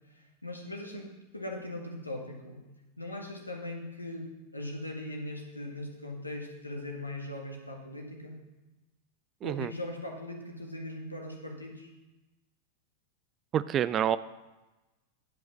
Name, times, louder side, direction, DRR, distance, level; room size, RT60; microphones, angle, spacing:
voice 1, 0.1-2.6 3.0-8.3 9.4-11.9, left 1 dB, 85° left, 1 dB, 1.7 m, -40 dB
voice 2, 9.4-9.7 13.5-14.2, right 10 dB, 30° right, 16 dB, 0.4 m, -27 dB
10.5 x 5.5 x 7.4 m, 1.1 s
figure-of-eight pair, 90°, 0 cm